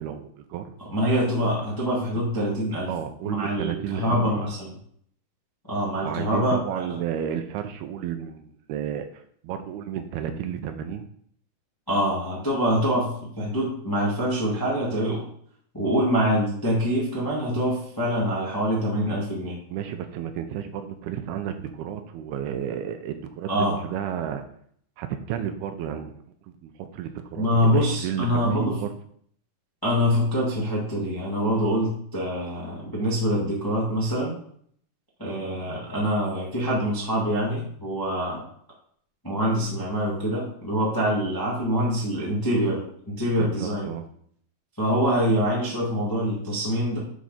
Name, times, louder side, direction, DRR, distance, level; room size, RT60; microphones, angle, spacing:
voice 1, 0.0-0.6 2.9-4.5 6.0-11.0 19.7-24.4 25.0-26.1 26.6-28.9 43.4-44.0, right 9 dB, 80° right, 7 dB, 2.5 m, -32 dB
voice 2, 0.8-2.9 3.2-4.8 5.7-7.0 11.9-15.2 15.7-19.5 23.5-23.8 27.3-28.8 29.8-34.3 35.2-38.4 39.2-43.9 44.8-47.0, equal, 15° left, -5 dB, 0.8 m, -25 dB
9.4 x 4.7 x 4.2 m, 0.63 s
omnidirectional pair, 4.6 m